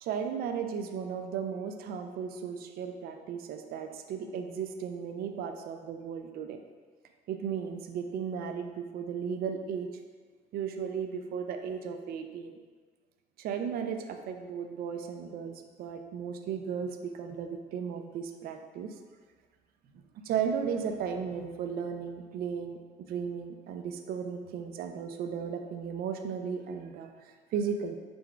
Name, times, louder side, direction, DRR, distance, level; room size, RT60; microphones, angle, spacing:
voice 1, 0.0-6.6 7.3-9.9 10.5-12.6 13.4-18.9 20.2-22.8 23.1-28.0, right 7 dB, 65° right, 6 dB, 0.4 m, -35 dB
4.4 x 3.9 x 2.3 m, 1.4 s
cardioid pair, 110°, 17 cm